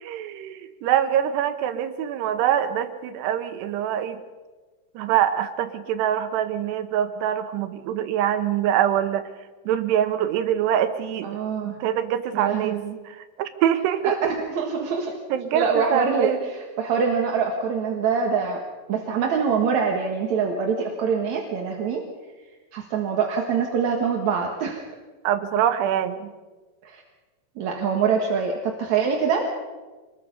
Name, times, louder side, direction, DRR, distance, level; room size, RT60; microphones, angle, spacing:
voice 1, 0.0-4.2 5.0-9.3 9.7-11.4 11.8-12.8 13.1-14.3 15.3-16.4 25.2-26.3, right 10 dB, 85° right, 9 dB, 3.2 m, -24 dB
voice 2, 11.2-11.8 12.3-13.0 14.0-15.1 15.5-18.6 18.9-22.0 22.7-24.8 26.8-27.0 27.6-29.5, right 6 dB, 55° right, 1 dB, 2.4 m, -24 dB
26.0 x 20.5 x 5.4 m, 1.3 s
omnidirectional pair, 4.8 m